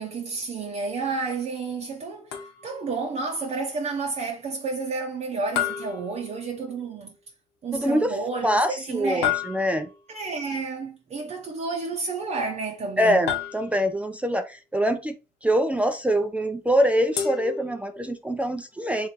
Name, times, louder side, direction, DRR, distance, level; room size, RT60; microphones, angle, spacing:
voice 1, 0.0-7.2 7.6-9.4 10.1-13.3, right 4 dB, 40° right, 0.7 m, -31 dB
sound 1, 2.3-2.9 5.6-6.8 9.2-10.1 13.3-14.1 17.2-18.2, left 9 dB, 85° left, 1.1 m, -31 dB
voice 2, 7.7-8.1 8.4-9.9 13.0-15.2 15.4-19.1, equal, 10° right, 0.4 m, -24 dB
3.2 x 3.1 x 4.1 m
cardioid pair, 110°, 17 cm